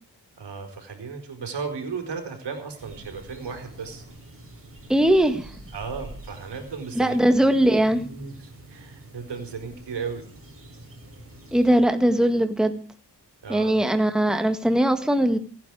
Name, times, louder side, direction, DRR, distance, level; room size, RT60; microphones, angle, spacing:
voice 1, 0.4-4.0 5.7-7.2 7.8-10.3 13.4-13.8, right 5 dB, 85° right, 5 dB, 4.6 m, -35 dB
sound 1, 2.8-11.8, right 1 dB, 30° right, 5.6 m, -45 dB
voice 2, 4.9-5.5 6.9-8.1 11.5-12.8 13.5-15.4, right 1 dB, ahead, 7 dB, 1.8 m, -20 dB
28.0 x 10.0 x 4.9 m, 0.40 s
cardioid pair, 85°, 41 cm